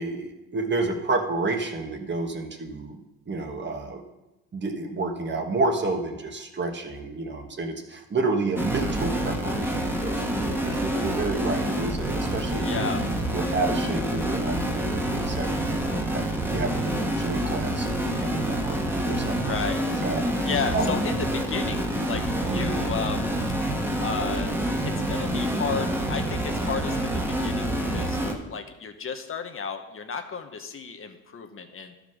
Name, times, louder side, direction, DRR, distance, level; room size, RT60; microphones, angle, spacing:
voice 1, 0.0-4.0 4.5-12.9 13.3-21.0 22.4-22.8, right 3 dB, 35° right, 3 dB, 1.4 m, -30 dB
sound 1, 8.6-28.3, right 1 dB, 5° right, 1.4 m, -27 dB
voice 2, 12.6-13.0 19.4-19.8 20.4-23.3 24.0-28.2 28.5-31.9, left 5 dB, 45° left, 6 dB, 1.1 m, -33 dB
11.5 x 5.2 x 6.3 m, 0.99 s
cardioid pair, 90°, 30 cm